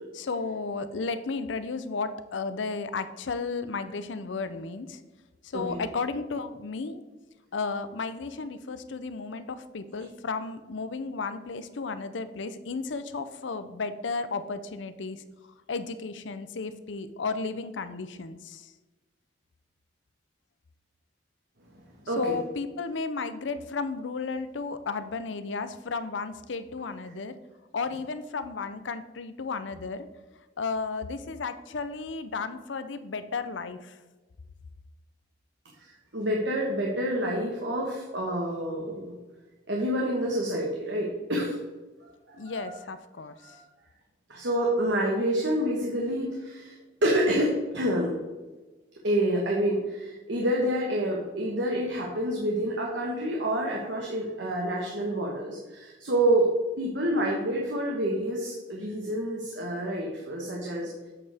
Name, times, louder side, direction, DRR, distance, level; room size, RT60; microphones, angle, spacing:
voice 1, 0.1-5.0 5.4-7.0 7.5-15.2 15.7-18.7 22.2-27.3 27.7-30.1 30.6-33.9 42.4-43.6, left 4 dB, 80° left, 11 dB, 0.6 m, -33 dB
voice 2, 22.1-22.4 35.8-39.1 39.7-41.5 42.3-42.8 43.4-43.6 44.3-46.8 47.0-48.2 49.0-56.5 56.8-60.9, right 1 dB, 70° right, -2 dB, 1.3 m, -28 dB
8.4 x 6.6 x 3.4 m, 1.2 s
head